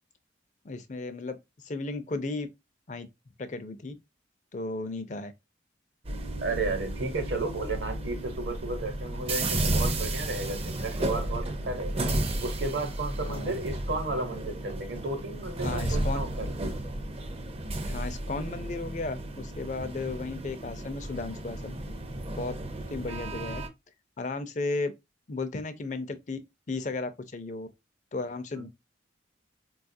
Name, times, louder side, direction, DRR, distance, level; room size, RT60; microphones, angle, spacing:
voice 1, 0.6-1.4 1.6-2.5 2.9-3.1 3.4-3.9 4.5-5.3 13.2-13.5 15.6-16.2 17.9-21.7 22.3-22.6 22.9-23.6 24.2-24.9 25.3-26.4 26.7-27.7 28.1-28.7, left 3 dB, 40° left, 0.4 m, -34 dB
sound 1, 6.0-23.7, right 1 dB, 30° right, 0.5 m, -33 dB
voice 2, 6.4-12.0 12.4-16.6 28.5-28.6, right 2 dB, 70° right, 0.9 m, -33 dB
4.0 x 2.3 x 2.5 m
head